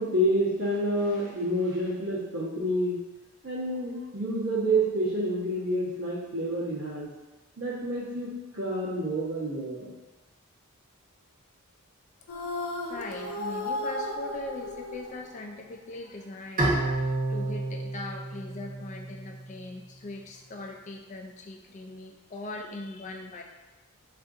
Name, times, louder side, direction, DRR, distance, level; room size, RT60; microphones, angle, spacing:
voice 1, 0.0-3.0 3.4-7.1 7.6-9.9, right 1 dB, 70° right, -11 dB, 0.9 m, -28 dB
sound 1, 12.3-15.7, left 1 dB, 80° left, 0.6 m, -35 dB
voice 2, 12.9-23.4, left 2 dB, 35° left, 2 dB, 0.3 m, -40 dB
Bowed string instrument, 16.6-19.8, right 2 dB, 40° right, 0.9 m, -30 dB
3.6 x 2.5 x 2.5 m, 1.1 s
head